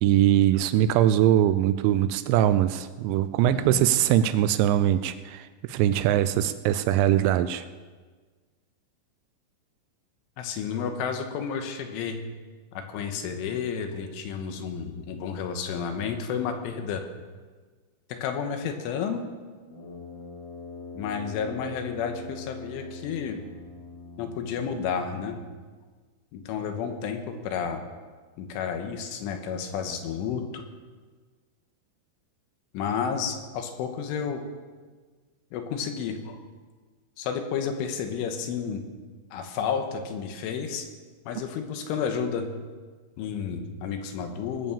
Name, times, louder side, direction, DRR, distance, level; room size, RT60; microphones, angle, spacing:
voice 1, 0.0-7.6, right 12 dB, 85° right, 12 dB, 2.6 m, -22 dB
voice 2, 3.4-3.9 10.4-12.2 12.7-17.0 18.1-19.3 20.9-23.4 24.2-25.4 26.3-27.8 28.4-30.7 32.7-34.4 35.5-36.4 37.2-38.8 39.3-40.9 41.3-42.5 43.2-44.7, left 6 dB, 80° left, 6 dB, 3.6 m, -31 dB
Brass instrument, 19.7-25.6, left 3 dB, 45° left, 5.2 m, -42 dB
19.5 x 7.1 x 7.2 m, 1.4 s
omnidirectional pair, 5.7 m